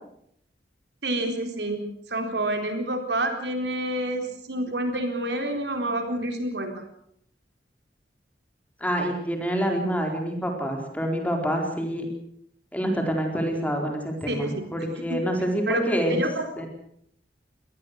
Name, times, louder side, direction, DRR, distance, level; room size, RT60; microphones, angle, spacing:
voice 1, 1.0-1.8 2.1-6.8 14.3-14.7 15.1-15.2 15.7-15.8 16.1-16.5, right 1 dB, 70° right, 5 dB, 4.0 m, -28 dB
voice 2, 8.8-12.1 12.7-16.2 16.6-16.7, equal, 10° left, 2 dB, 4.2 m, -27 dB
25.0 x 18.5 x 6.5 m, 0.71 s
head